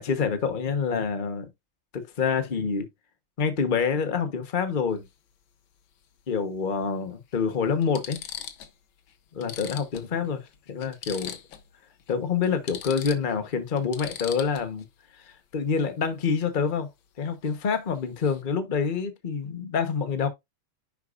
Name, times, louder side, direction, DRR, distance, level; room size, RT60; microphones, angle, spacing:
voice 1, 0.0-1.5 1.9-2.9 3.4-5.0 6.3-8.2 9.3-11.4 12.1-14.8 15.1-16.9 17.2-20.3, left 6 dB, 30° left, 1.0 m, -27 dB
sound 1, 4.9-5.1 6.6-6.7 7.3-7.4 7.8-8.8 9.1-9.2 9.4-11.7 12.0-12.1 12.4-14.8 17.4-17.7 17.9-18.4, left 9 dB, 70° left, 1.7 m, -40 dB
10.5 x 4.7 x 2.5 m
omnidirectional pair, 2.3 m